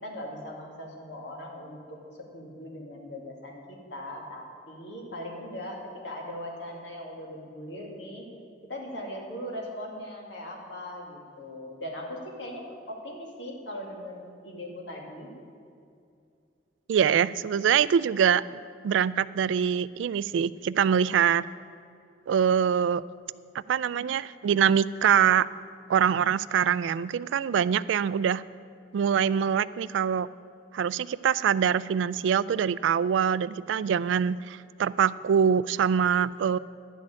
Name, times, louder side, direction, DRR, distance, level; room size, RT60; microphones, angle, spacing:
voice 1, 0.0-2.0 2.3-8.3 8.7-15.3, left 1 dB, 75° left, -1 dB, 2.3 m, -39 dB
voice 2, 16.9-18.4 18.8-21.4 22.3-23.0 23.7-25.5 25.9-28.4 28.9-30.3 30.7-36.6, right 8 dB, 80° right, 18 dB, 0.3 m, -24 dB
11.0 x 6.4 x 8.5 m, 2.4 s
head